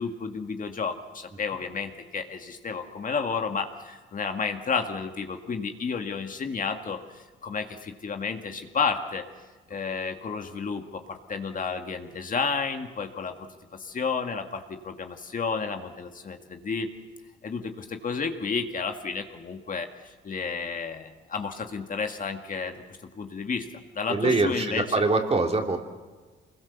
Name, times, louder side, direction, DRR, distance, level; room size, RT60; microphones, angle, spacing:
voice 1, 0.0-9.2 9.7-13.3 13.7-16.9 17.4-22.8 23.2-23.7 23.9-24.8, left 5 dB, 40° left, 5 dB, 2.0 m, -31 dB
voice 2, 24.1-25.8, right 3 dB, 30° right, 3 dB, 3.3 m, -24 dB
25.0 x 21.5 x 7.1 m, 1.3 s
cardioid pair, 90°, 20 cm